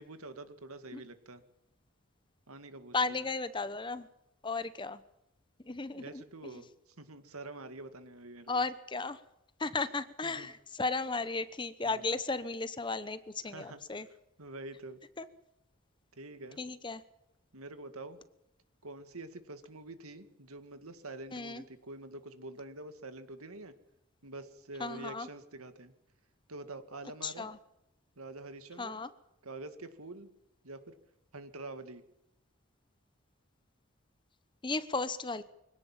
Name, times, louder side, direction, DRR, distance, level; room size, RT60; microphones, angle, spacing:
voice 1, 0.0-1.4 2.5-3.3 5.9-8.6 10.2-10.5 11.8-12.2 13.5-13.8 14.4-15.0 16.1-16.6 17.5-18.2 18.8-23.7 24.2-25.9 26.5-27.5 28.2-29.0 29.4-30.3 30.6-31.0 31.3-32.0, right 2 dB, 85° right, 10 dB, 2.2 m, -46 dB
voice 2, 2.9-4.1 4.4-5.0 5.6-6.2 8.5-9.2 9.6-14.1 15.2-15.3 16.6-17.0 21.3-21.6 24.8-25.3 27.2-27.6 28.8-29.1 34.6-35.4, left 3 dB, 20° left, 14 dB, 0.9 m, -35 dB
24.5 x 17.5 x 7.5 m, 0.86 s
head